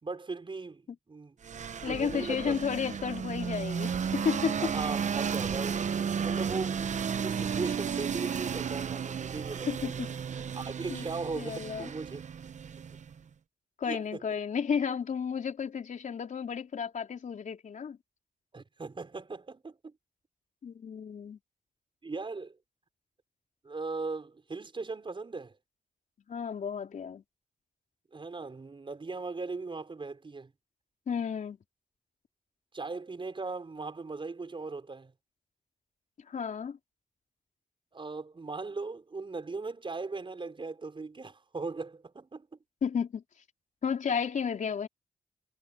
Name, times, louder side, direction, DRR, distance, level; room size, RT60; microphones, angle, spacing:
voice 1, 0.0-1.4 1.8-2.6 4.6-9.9 10.4-12.2 13.8-14.2 18.5-19.9 22.0-22.6 23.6-25.6 28.1-30.5 32.7-35.1 37.9-42.5, right 3 dB, 40° right, 5.2 m, -38 dB
sound 1, 1.4-13.2, right 7 dB, 60° right, 0.9 m, -33 dB
voice 2, 1.8-4.7 9.7-10.1 10.9-11.0 11.4-11.9 13.8-18.0 20.6-21.4 26.3-27.2 31.1-31.6 36.3-36.8 42.8-43.2 43.8-44.9, left 7 dB, 70° left, 3.9 m, -32 dB
cardioid pair, 80°, 14 cm